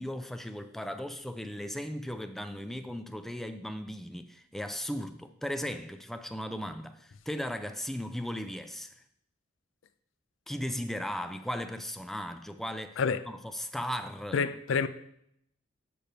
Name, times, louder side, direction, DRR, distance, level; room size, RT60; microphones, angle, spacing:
voice 1, 0.0-8.9 10.5-13.0 13.3-14.5, equal, ahead, 0.4 m, -37 dB
voice 2, 14.3-14.9, left 5 dB, 70° left, 0.4 m, -27 dB
6.8 x 6.7 x 4.4 m
head